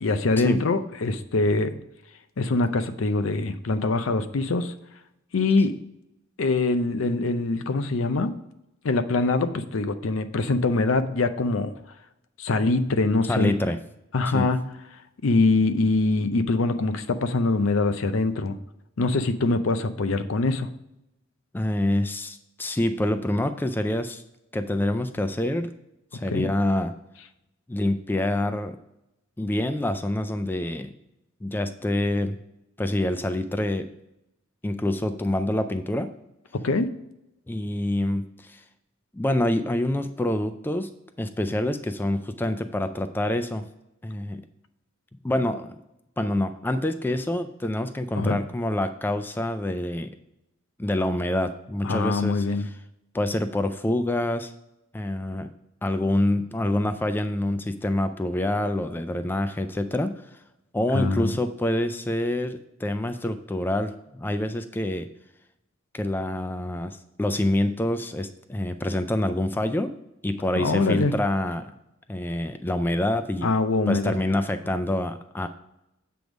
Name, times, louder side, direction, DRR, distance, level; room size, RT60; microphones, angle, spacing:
voice 1, 0.0-1.7 2.4-4.7 5.3-5.8 6.4-8.3 8.8-11.7 12.4-13.5 14.1-14.6 15.2-18.5 19.0-20.7 26.3-26.5 36.5-36.9 48.1-48.4 51.8-52.6 60.9-61.3 70.6-71.1 73.4-74.1, left 3 dB, 70° left, 10 dB, 0.6 m, -23 dB
voice 2, 13.3-13.8 14.3-14.5 21.5-24.2 24.5-25.7 26.1-26.9 27.7-28.8 29.4-30.9 31.4-32.4 32.8-33.9 34.6-36.1 37.5-38.6 39.1-40.9 41.2-43.7 44.0-44.4 45.2-45.8 46.2-50.1 50.8-52.7 53.1-54.5 54.9-55.5 55.8-60.1 60.7-65.1 65.9-69.9 70.2-71.7 72.1-73.5 73.9-75.5, left 1 dB, 10° left, 9 dB, 0.3 m, -26 dB
7.8 x 3.5 x 6.1 m, 0.85 s
head